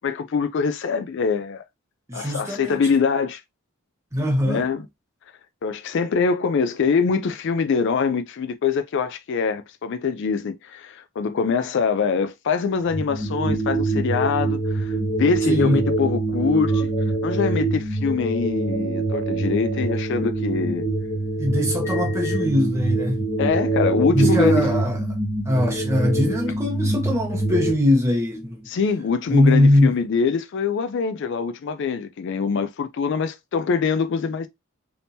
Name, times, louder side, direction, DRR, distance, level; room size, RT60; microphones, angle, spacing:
voice 1, 0.0-1.6 2.1-3.4 4.4-4.8 5.6-16.9 17.2-20.9 23.4-24.7 28.7-34.5, left 5 dB, 55° left, 0.3 m, -24 dB
voice 2, 2.1-2.8 4.1-4.7 15.5-15.8 21.4-23.2 24.1-25.0 25.4-28.7 29.3-30.0, left 1 dB, 15° right, 1.0 m, -21 dB
sound 1, 12.9-27.7, right 2 dB, 5° left, 1.7 m, -24 dB
3.5 x 2.8 x 2.7 m
head